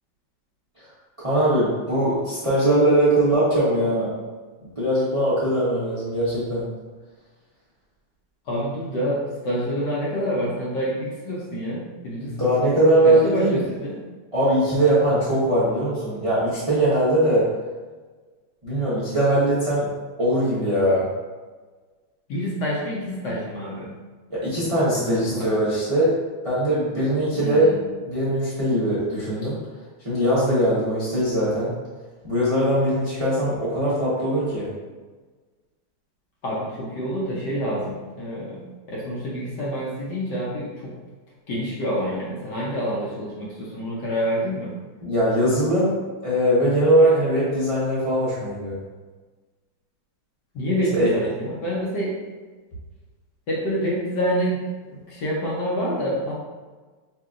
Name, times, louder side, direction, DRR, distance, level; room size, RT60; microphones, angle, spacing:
voice 1, 1.2-4.1 4.8-6.7 12.2-13.6 14.3-17.5 18.6-19.9 20.2-21.1 24.3-26.2 26.4-27.8 28.0-29.6 30.0-31.7 32.2-34.7 45.0-48.8 50.9-51.1, right 1 dB, 30° right, -10 dB, 0.6 m, -21 dB
voice 2, 8.5-12.4 13.0-14.0 22.3-23.9 25.0-25.5 27.3-27.8 36.4-38.6 38.9-40.9 41.5-44.7 50.5-52.2 53.5-54.6 54.9-56.3, equal, 65° left, -5 dB, 1.3 m, -27 dB
5.6 x 2.6 x 2.4 m, 1.4 s
omnidirectional pair, 2.3 m